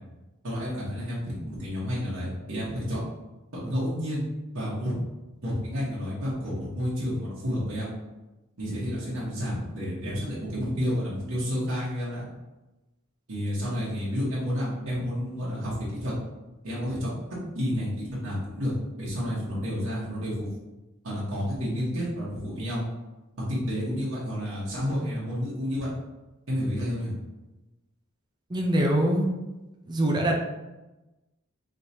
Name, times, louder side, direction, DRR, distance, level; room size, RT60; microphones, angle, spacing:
voice 1, 0.4-1.2 1.4-3.0 3.6-4.2 4.5-4.9 5.4-7.9 8.6-12.3 13.3-16.1 16.6-17.1 17.5-18.7 19.0-20.5 21.0-22.8 23.4-25.9 26.5-27.1, equal, 85° right, -8 dB, 1.4 m, -30 dB
voice 2, 28.5-29.3 29.9-30.3, right 1 dB, 20° right, 0 dB, 0.5 m, -23 dB
5.0 x 3.1 x 2.8 m, 1.0 s
head